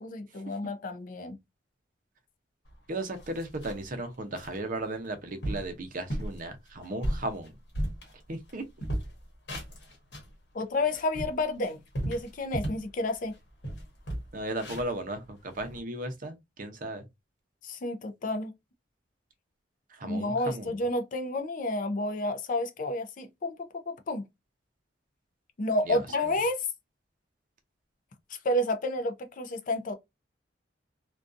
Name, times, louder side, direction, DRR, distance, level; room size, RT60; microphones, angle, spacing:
voice 1, 0.0-1.4 10.5-13.3 17.6-18.5 20.0-24.2 25.6-26.6 28.4-29.9, left 1 dB, 45° left, 0.4 m, -30 dB
sound 1, 2.7-2.8 3.1-3.9 4.4-4.6 5.0-5.1 5.4-5.7 6.1-6.4 6.8-8.5 8.8-10.3 10.8-12.9 13.3-13.4 13.6-15.8, right 1 dB, 65° left, 1.0 m, -35 dB
voice 2, 2.9-7.5 8.3-8.6 14.3-17.1 19.9-20.8 25.9-26.0, right 2 dB, 50° right, 0.6 m, -35 dB
2.5 x 2.2 x 2.4 m
head